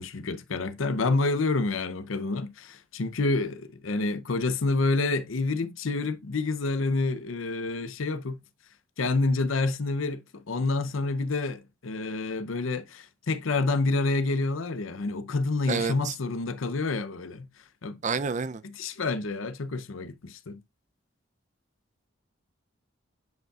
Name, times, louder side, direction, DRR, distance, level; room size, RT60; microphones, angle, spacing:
voice 1, 0.0-8.4 9.0-17.5 17.8-18.0 18.6-20.6, left 3 dB, 90° left, 0.7 m, -28 dB
voice 2, 18.0-18.6, right 5 dB, 35° right, 0.5 m, -28 dB
9.2 x 5.3 x 2.4 m
head